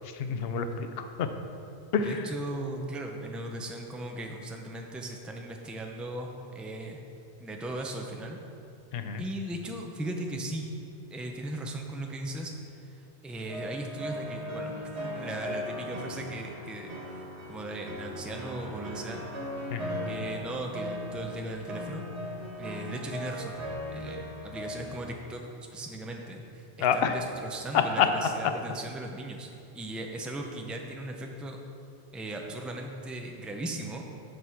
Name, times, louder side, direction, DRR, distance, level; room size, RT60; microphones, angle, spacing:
voice 1, 0.1-1.3 1.9-2.3 8.9-9.2 19.7-20.0 26.8-27.2 27.7-28.1 28.4-28.5, left 7 dB, 65° left, 8 dB, 0.8 m, -27 dB
voice 2, 2.0-7.0 7.4-8.4 9.2-10.7 11.1-12.5 13.2-14.7 15.0-16.9 17.5-19.2 20.1-22.0 22.6-23.6 23.9-31.6 32.1-34.0, right 1 dB, ahead, 2 dB, 0.6 m, -37 dB
sound 1, 13.5-25.0, left 1 dB, 90° right, 1.6 m, -38 dB
7.9 x 6.7 x 5.8 m, 2.6 s
omnidirectional pair, 1.1 m